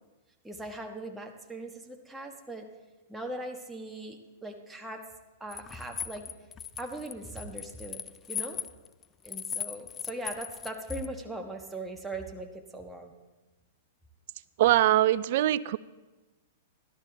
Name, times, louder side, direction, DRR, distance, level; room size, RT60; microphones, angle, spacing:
voice 1, 0.4-2.7 3.1-5.0 5.4-6.3 6.7-8.0 8.3-8.6 9.2-13.1, right 1 dB, 5° right, 3 dB, 1.3 m, -40 dB
sound 1, 5.5-11.1, left 8 dB, 25° left, 0.4 m, -38 dB
voice 2, 14.6-15.8, right 14 dB, 60° right, 17 dB, 0.4 m, -22 dB
13.0 x 11.5 x 3.9 m, 1.1 s
hypercardioid pair, 110°, 0 cm